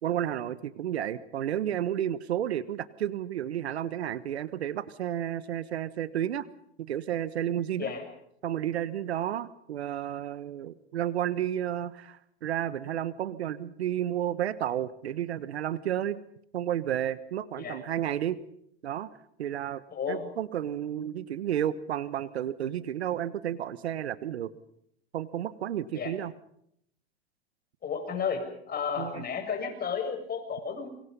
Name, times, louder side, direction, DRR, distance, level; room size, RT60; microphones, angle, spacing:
voice 1, 0.0-6.5 6.8-7.9 8.4-16.2 16.5-18.4 18.8-19.1 19.4-24.5 25.1-26.3 29.0-29.2, right 11 dB, 80° right, 16 dB, 1.3 m, -32 dB
voice 2, 19.9-20.3 25.9-26.1 27.8-28.4 28.7-30.9, left 6 dB, 30° left, 5 dB, 7.4 m, -32 dB
28.0 x 24.0 x 5.5 m, 0.71 s
hypercardioid pair, 95°, 32 cm